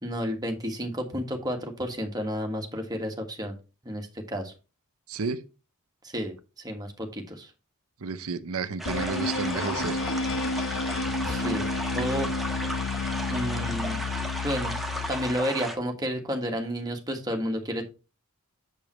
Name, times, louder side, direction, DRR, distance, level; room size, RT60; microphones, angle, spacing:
voice 1, 0.0-3.5 3.8-4.5 6.0-7.5 11.2-11.7 11.9-12.3 13.3-14.0 14.4-14.8 15.1-17.8, equal, 20° right, 1.6 m, -31 dB
voice 2, 5.1-5.4 8.0-10.0, right 4 dB, 70° right, 0.7 m, -31 dB
sound 1, 8.8-15.8, right 1 dB, ahead, 1.2 m, -35 dB
sound 2, 8.9-15.4, left 3 dB, 60° left, 0.9 m, -31 dB
7.2 x 6.9 x 3.1 m
head